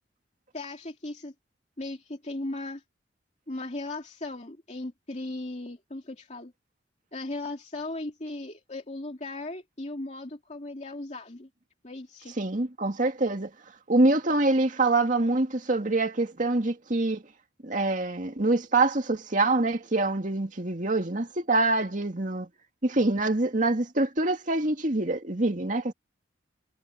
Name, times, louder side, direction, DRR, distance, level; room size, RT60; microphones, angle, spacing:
voice 1, 0.5-1.3 1.8-2.8 3.5-6.5 7.1-11.5 11.8-12.4, left 2 dB, 40° left, 2.6 m, -37 dB
voice 2, 12.4-13.5 13.9-17.2 17.6-22.5 22.8-25.9, right 2 dB, 45° right, 2.3 m, -25 dB
head